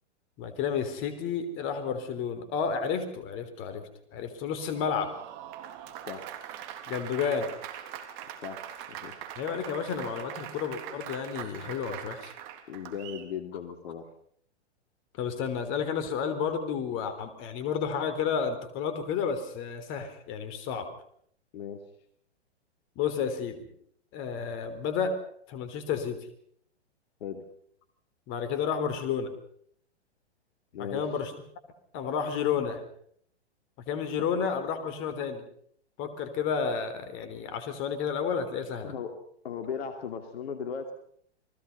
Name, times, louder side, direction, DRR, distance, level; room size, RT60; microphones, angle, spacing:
voice 1, 0.4-5.1 6.9-7.5 9.4-12.3 15.1-20.9 23.0-23.6 24.1-25.2 25.5-26.2 28.3-29.3 30.9-31.3 31.9-32.8 33.9-35.4 36.0-38.9, left 6 dB, 35° left, 10 dB, 3.9 m, -31 dB
Applause, 4.6-13.3, right 10 dB, 40° right, 3.2 m, -42 dB
voice 2, 8.4-9.2 12.7-14.1 21.5-21.9 27.2-27.5 30.7-31.1 34.2-34.3 38.8-40.9, left 7 dB, 60° left, 7 dB, 2.8 m, -37 dB
29.5 x 20.0 x 5.6 m, 0.64 s
hypercardioid pair, 120°, 34 cm